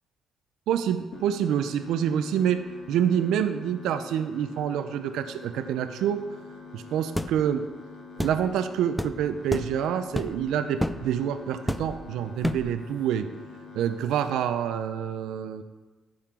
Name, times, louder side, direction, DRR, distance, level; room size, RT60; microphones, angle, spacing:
voice 1, 0.7-2.6 2.9-6.2 6.7-7.6 8.2-13.3 13.7-15.6, right 9 dB, 85° right, 9 dB, 0.5 m, -27 dB
sound 1, 1.1-14.0, left 4 dB, 80° left, 2.0 m, -45 dB
sound 2, 7.2-7.4 8.2-8.4 9.0-9.1 9.5-9.7 10.2-10.4 10.8-11.0 11.7-12.0 12.4-12.7, left 1 dB, 5° left, 0.5 m, -29 dB
12.0 x 7.3 x 3.7 m, 1.2 s
cardioid pair, 90°, 0 cm